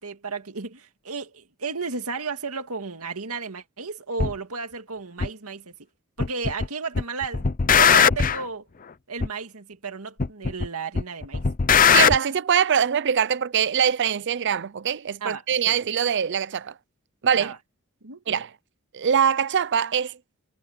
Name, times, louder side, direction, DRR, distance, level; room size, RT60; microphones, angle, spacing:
voice 1, 0.0-5.7 6.2-8.7 9.1-11.4 15.2-15.8 17.3-17.6 18.0-18.2, right 4 dB, 85° right, 2.2 m, -33 dB
sound 1, 4.2-4.3 5.2-5.3 6.2-6.7 6.9-8.4 9.2-9.3 10.2-10.7 10.9-12.2, left 7 dB, 40° left, 0.7 m, -19 dB
voice 2, 11.9-16.7 17.2-17.5 18.3-18.5 18.9-20.2, right 8 dB, 55° right, 0.6 m, -23 dB
head